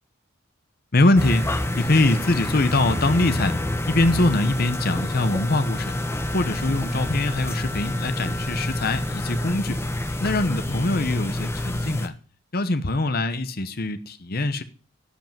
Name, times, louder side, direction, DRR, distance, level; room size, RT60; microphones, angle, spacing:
voice 1, 0.9-1.5 1.7-3.6 3.9-5.9 6.3-9.8 10.2-12.1 12.5-14.6, left 2 dB, 45° left, 0.9 m, -23 dB
sound 1, 1.2-12.1, left 1 dB, 10° left, 0.9 m, -28 dB
11.5 x 5.5 x 8.9 m
head